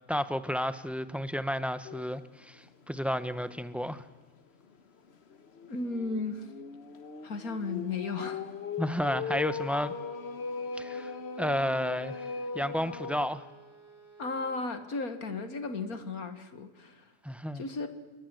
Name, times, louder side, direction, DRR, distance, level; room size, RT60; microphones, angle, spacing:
voice 1, 0.1-4.0 8.8-9.9 10.7-11.1 11.4-13.4 17.2-17.6, equal, ahead, 12 dB, 0.7 m, -32 dB
Tokyo - Singing Priest, 1.8-2.2 2.6-2.7 3.1-3.2 5.3-13.3, left 4 dB, 45° left, 1.4 m, -39 dB
voice 2, 5.7-6.5 7.2-8.4 14.2-17.1 17.5-17.9, left 3 dB, 75° left, 9 dB, 2.3 m, -35 dB
Bowed string instrument, 9.6-14.6, right 2 dB, 15° right, 6.8 m, -55 dB
28.5 x 21.5 x 7.9 m, 1.3 s
omnidirectional pair, 1.5 m